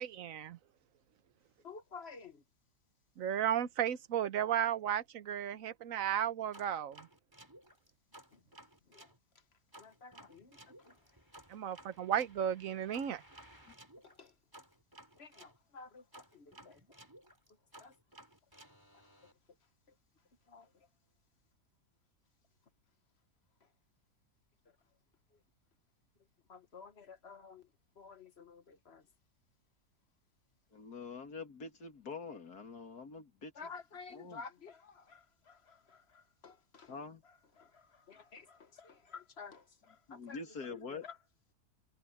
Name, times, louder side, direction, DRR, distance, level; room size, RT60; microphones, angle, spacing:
voice 1, 0.2-0.6 3.2-7.1 11.5-13.2, right 9 dB, 60° right, 1.2 m, -34 dB
voice 2, 1.6-2.4 8.3-8.4 8.9-9.1 9.8-11.0 14.0-14.3 15.2-16.8 17.8-17.9 20.5-20.9 25.3-25.4 26.5-27.7 28.0-29.1 33.5-40.4 40.7-41.2, left 5 dB, 45° left, 1.4 m, -52 dB
sound 1, 6.5-9.2 9.7-15.6 16.1-19.3, right 1 dB, 15° right, 5.4 m, -58 dB
voice 3, 30.7-33.5 34.1-34.4 36.9-37.2 40.1-41.0, left 4 dB, 75° left, 2.8 m, -45 dB
omnidirectional pair, 1.7 m